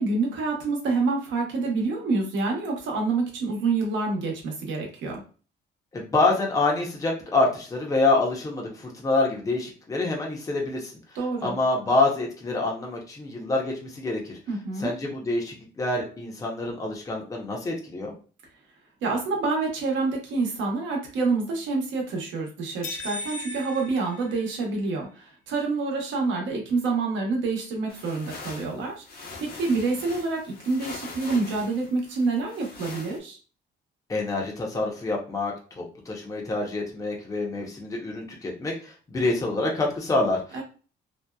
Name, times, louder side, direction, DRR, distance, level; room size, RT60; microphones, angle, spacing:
voice 1, 0.0-5.2 11.1-11.5 14.5-14.9 19.0-33.4 40.5-40.6, right 3 dB, 80° right, 1 dB, 0.9 m, -27 dB
voice 2, 5.9-10.9 11.4-14.4 14.8-18.1 34.1-40.6, left 2 dB, 15° left, 0 dB, 0.6 m, -26 dB
sound 1, 22.8-25.0, left 2 dB, 85° left, 0.6 m, -38 dB
sound 2, 27.9-33.2, left 3 dB, 55° left, 0.8 m, -42 dB
2.7 x 2.1 x 2.2 m, 0.37 s
cardioid pair, 125°, 19 cm